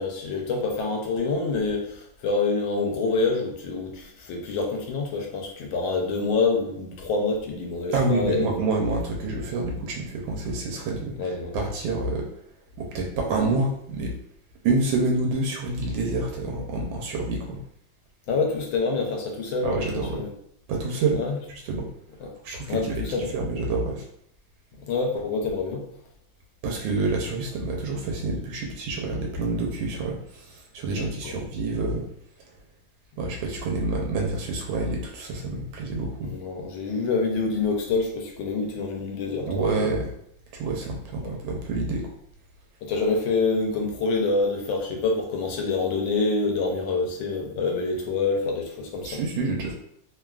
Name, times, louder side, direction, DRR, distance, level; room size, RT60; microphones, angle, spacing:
voice 1, 0.0-8.5 11.2-11.5 18.3-20.3 21.1-21.4 22.2-22.3 22.7-23.3 24.8-25.9 30.9-31.4 36.2-39.9 41.2-41.4 42.8-49.2, left 3 dB, 80° left, 1 dB, 1.4 m, -26 dB
voice 2, 7.9-12.3 12.8-14.2 14.6-17.6 19.6-20.2 20.7-21.2 21.6-21.9 22.4-23.0 23.3-24.1 26.6-32.1 33.2-36.3 39.5-40.1 40.5-42.1 49.0-49.7, right 3 dB, 80° right, 0 dB, 1.3 m, -27 dB
3.3 x 2.2 x 2.3 m, 0.70 s
omnidirectional pair, 2.1 m